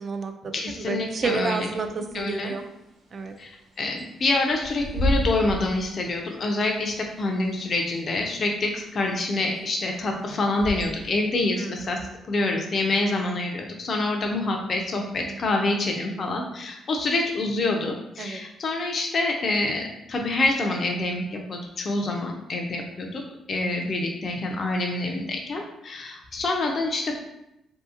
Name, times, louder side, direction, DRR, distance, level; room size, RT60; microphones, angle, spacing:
voice 1, 0.0-2.6 3.1-3.3 11.6-12.0 15.2-15.3 18.2-18.4 23.6-23.7, right 4 dB, 45° right, 6 dB, 0.3 m, -31 dB
voice 2, 0.5-1.7 2.1-2.5 3.4-3.5 3.8-12.0 12.3-23.2 23.5-27.2, left 2 dB, 45° left, 2 dB, 0.4 m, -26 dB
Bird / Wind, 2.5-11.2, equal, 80° right, 0.7 m, -33 dB
2.7 x 2.6 x 2.4 m, 0.86 s
cardioid pair, 90°, 0 cm